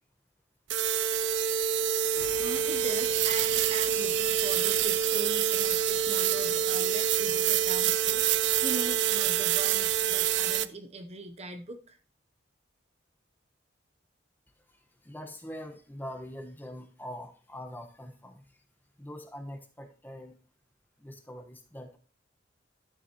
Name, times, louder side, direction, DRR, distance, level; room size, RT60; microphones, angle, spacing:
sound 1, 0.7-10.7, right 9 dB, 70° right, 0.4 m, -26 dB
sound 2, 2.1-10.7, left 3 dB, 55° left, 1.2 m, -48 dB
voice 1, 2.4-12.0, right 2 dB, 35° right, 6 dB, 0.7 m, -40 dB
voice 2, 14.7-18.6 19.0-20.4 21.0-22.0, equal, 10° left, 4 dB, 1.1 m, -44 dB
12.5 x 7.2 x 2.9 m, 0.38 s
head